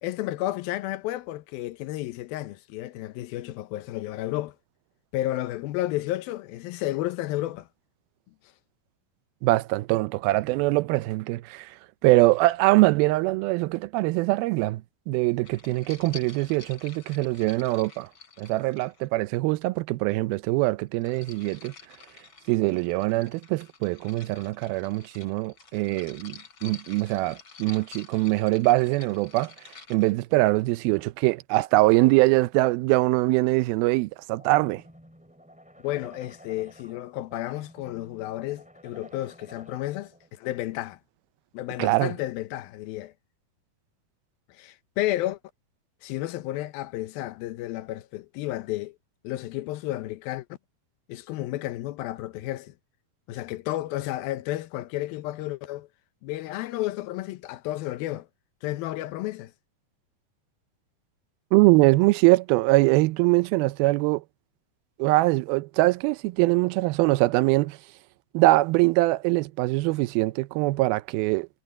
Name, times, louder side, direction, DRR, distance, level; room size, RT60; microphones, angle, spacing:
voice 1, 0.0-4.6 5.1-7.7 35.8-41.0 41.5-43.1 44.5-45.4 46.0-49.0 49.2-50.5 51.1-52.7 53.3-55.9 56.2-58.3 58.6-59.5, left 15 dB, 80° left, 2.6 m, -32 dB
voice 2, 9.4-11.8 12.0-18.1 18.4-21.7 22.5-29.5 29.9-34.8 41.8-42.1 61.5-64.2 65.0-67.8 68.3-71.5, right 20 dB, 85° right, 2.4 m, -23 dB
sound 1, 15.4-19.4 20.6-30.1, left 6 dB, 35° left, 3.2 m, -48 dB
sound 2, 34.3-40.3, equal, ahead, 2.6 m, -52 dB
omnidirectional pair, 4.3 m